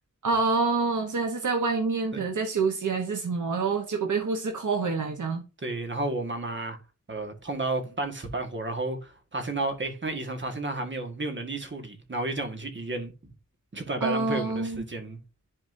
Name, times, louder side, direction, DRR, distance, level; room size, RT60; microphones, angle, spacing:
voice 1, 0.2-5.4 14.0-14.8, right 4 dB, 80° right, 1.1 m, -27 dB
voice 2, 5.6-6.8 7.1-13.3 13.7-15.2, right 2 dB, 40° right, 1.7 m, -32 dB
11.0 x 4.3 x 2.7 m
wide cardioid pair, 105°, 30 cm